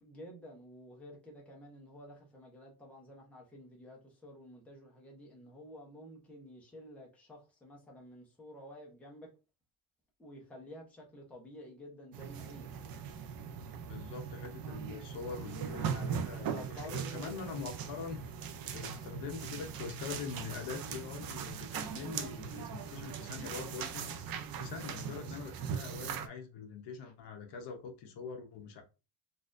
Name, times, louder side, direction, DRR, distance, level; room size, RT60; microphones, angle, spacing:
voice 1, 0.0-9.3 10.2-12.7 16.5-17.5, equal, 5° left, 0.7 m, -51 dB
sound 1, 12.1-26.3, right 7 dB, 50° right, 0.4 m, -40 dB
sound 2, 12.4-25.8, left 3 dB, 65° right, 1.2 m, -60 dB
voice 2, 13.9-18.2 18.7-24.1 24.6-28.8, left 6 dB, 55° left, 0.8 m, -43 dB
4.0 x 2.5 x 2.4 m
cardioid pair, 160°, 49 cm